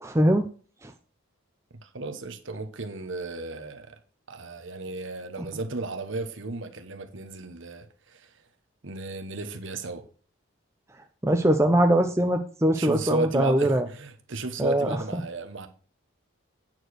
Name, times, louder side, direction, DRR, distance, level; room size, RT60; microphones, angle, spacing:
voice 1, 0.0-0.5 0.8-0.9 11.2-13.9 14.6-15.2, right 1 dB, 15° right, 0.6 m, -22 dB
voice 2, 1.8-3.9 4.3-8.3 8.8-10.0 12.7-15.7, right 3 dB, 60° right, 1.1 m, -34 dB
9.1 x 4.7 x 6.3 m
head